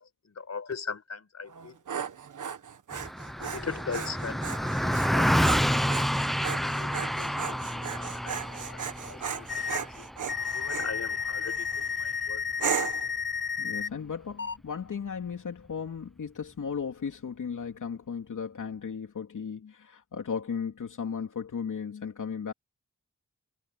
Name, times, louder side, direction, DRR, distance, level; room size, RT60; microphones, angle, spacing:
voice 1, 0.0-1.8 3.4-6.0 6.6-8.4 8.6-10.1 10.5-12.9, left 5 dB, 60° left, 4.6 m, -40 dB
Dog, 1.5-10.9 11.5-11.9 12.6-13.1, right 7 dB, 85° right, 1.5 m, -36 dB
Car passing by, 2.9-12.5, equal, ahead, 0.6 m, -29 dB
sound 1, 9.5-9.8 10.3-13.9 14.4-14.6, left 6 dB, 40° left, 1.3 m, -32 dB
voice 2, 13.6-22.5, left 6 dB, 90° left, 3.2 m, -35 dB
wide cardioid pair, 160°, 30 cm